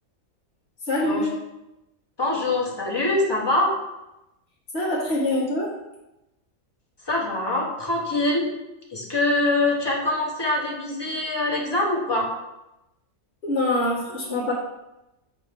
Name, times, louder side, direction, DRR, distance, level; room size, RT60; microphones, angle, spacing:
voice 1, 0.9-1.4 4.7-5.7 13.4-14.5, left 1 dB, 50° left, -8 dB, 1.8 m, -24 dB
voice 2, 2.2-3.7 7.1-8.5 8.9-12.3, left 2 dB, 20° left, -4 dB, 1.3 m, -24 dB
6.1 x 3.6 x 5.2 m, 0.94 s
omnidirectional pair, 1.4 m